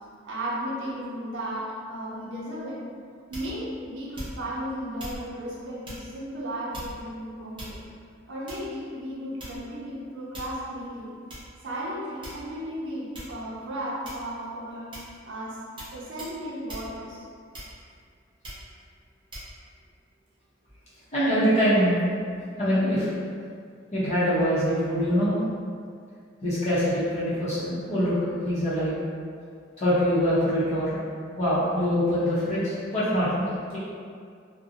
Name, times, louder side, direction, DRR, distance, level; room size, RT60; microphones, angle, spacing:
voice 1, 0.2-2.8 3.3-7.8 8.3-11.2 11.6-14.9 15.2-15.6 15.9-17.3, equal, 70° right, -6 dB, 0.5 m, -35 dB
sound 1, 3.3-3.7 4.1-4.6 5.0-5.2 5.8-6.1 6.7-7.1 7.6-8.0 8.5-8.8 9.4-9.8 10.3-10.6 11.3-11.4 12.2-12.6 13.1-13.4 14.0-14.4 14.9-15.2 15.8-15.9 16.2-16.4 16.7-16.9 17.5-17.9 18.4-18.7 19.3-19.5, equal, 25° right, 0.7 m, -40 dB
voice 2, 21.1-22.0 22.6-23.1 23.9-25.4 26.4-28.2 28.4-29.0 29.8-31.0 31.4-33.8, equal, 35° left, -11 dB, 0.7 m, -24 dB
2.6 x 2.0 x 2.6 m, 2.2 s
head